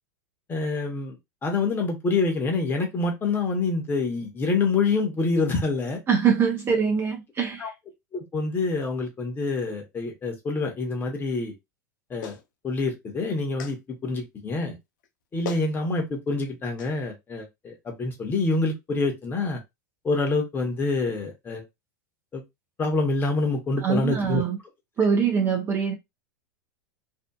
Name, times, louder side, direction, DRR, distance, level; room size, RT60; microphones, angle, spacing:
voice 1, 0.5-6.0 7.6-7.7 8.1-11.5 12.1-12.4 12.6-14.8 15.3-19.6 20.0-21.6 22.3-22.4 22.8-24.4, left 3 dB, 20° left, 1.0 m, -26 dB
voice 2, 6.1-7.7 23.8-24.6 25.0-25.9, right 6 dB, 25° right, 0.7 m, -23 dB
Clapping, 12.2-12.4 13.6-13.8 15.0-15.1 15.4-15.7 16.8-16.9, left 7 dB, 80° left, 0.7 m, -36 dB
2.7 x 2.4 x 2.3 m
supercardioid pair, 135°, 11 cm